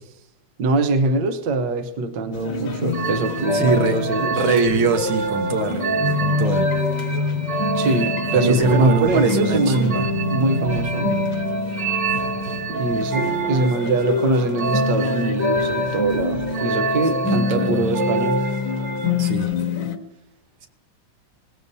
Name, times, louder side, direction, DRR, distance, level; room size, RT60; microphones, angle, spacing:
voice 1, 0.6-4.4 7.7-11.1 11.7-11.8 12.7-18.4, right 3 dB, 65° right, 7 dB, 1.6 m, -23 dB
sound 1, 2.3-20.0, left 4 dB, 75° left, 2.1 m, -28 dB
sound 2, 2.9-19.3, right 1 dB, 40° right, 1.4 m, -25 dB
voice 2, 3.5-4.0 4.4-6.9 8.3-10.1 17.2-17.9 19.2-19.5, right 4 dB, 80° right, 5 dB, 2.0 m, -22 dB
19.5 x 16.5 x 2.7 m, 0.75 s
omnidirectional pair, 2.1 m